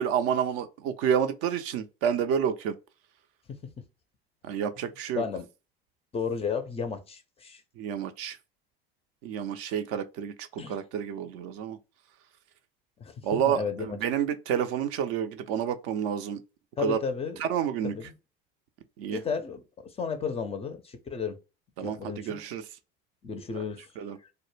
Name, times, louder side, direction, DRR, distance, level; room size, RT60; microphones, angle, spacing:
voice 1, 0.0-2.8 4.4-5.2 7.8-8.4 9.2-11.8 13.2-16.4 16.8-17.0 17.4-18.0 19.0-19.2 21.8-22.6 23.5-23.6 24.0-24.2, right 8 dB, 50° right, 0.4 m, -29 dB
voice 2, 5.1-5.5 6.1-7.6 10.6-10.8 13.0-13.9 16.8-17.4 17.8-18.1 19.1-21.4 21.8-22.4 23.2-23.9, left 6 dB, 20° left, 0.4 m, -33 dB
2.1 x 2.0 x 3.1 m
hypercardioid pair, 80°, 30 cm